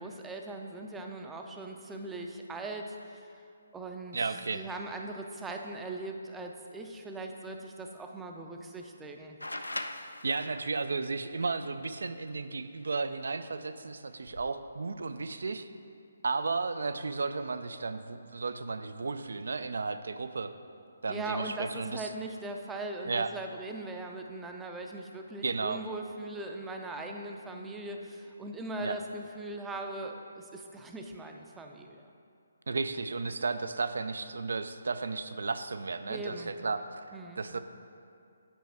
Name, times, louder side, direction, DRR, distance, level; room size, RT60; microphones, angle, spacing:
voice 1, 0.0-3.3 3.7-4.2 4.5-9.4 21.1-32.0 36.1-36.5 37.1-37.4, right 2 dB, 10° right, 3 dB, 0.5 m, -40 dB
voice 2, 4.1-4.6 10.2-15.7 16.2-20.5 21.0-22.1 23.1-23.3 25.4-25.8 28.8-29.0 32.7-36.8 37.1-37.6, right 4 dB, 65° right, 10 dB, 0.4 m, -34 dB
sound 1, 9.4-10.9 12.8-12.9 14.1-14.5, left 1 dB, 90° left, 0.4 m, -39 dB
8.8 x 5.4 x 3.5 m, 2.4 s
figure-of-eight pair, 140°, 0 cm